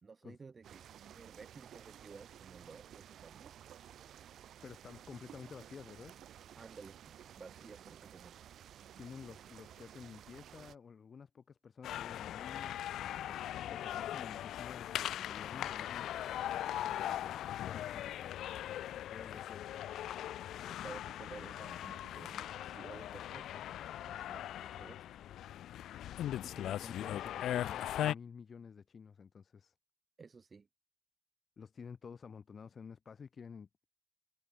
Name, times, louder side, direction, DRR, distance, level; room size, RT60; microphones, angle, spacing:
voice 1, 0.0-3.6 6.6-8.5 20.6-25.2 30.2-30.7, right 4 dB, 25° right, 3.6 m, -54 dB
sound 1, 0.6-10.8, right 10 dB, 55° right, 4.7 m, -54 dB
voice 2, 4.6-6.1 9.0-16.2 16.8-18.4 19.0-19.9 26.3-29.7 31.6-33.9, left 6 dB, 30° left, 7.8 m, -51 dB
sound 2, 11.8-28.1, left 12 dB, 65° left, 0.8 m, -39 dB
cardioid pair, 170°, 0 cm